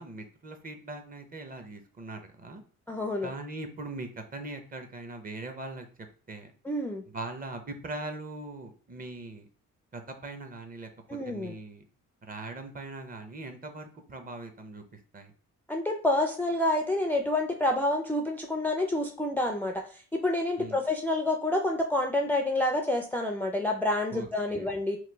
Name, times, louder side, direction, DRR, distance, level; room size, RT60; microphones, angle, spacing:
voice 1, 0.0-2.6 3.2-5.9 6.3-6.5 7.1-9.5 9.9-11.8 12.2-14.8 15.1-15.3 20.6-20.8 24.1-24.7, right 2 dB, 30° right, 6 dB, 0.7 m, -41 dB
voice 2, 2.9-3.3 6.6-7.0 11.1-11.5 15.7-25.0, left 1 dB, 5° left, 3 dB, 0.4 m, -28 dB
3.1 x 2.2 x 3.2 m, 0.41 s
cardioid pair, 90°, 30 cm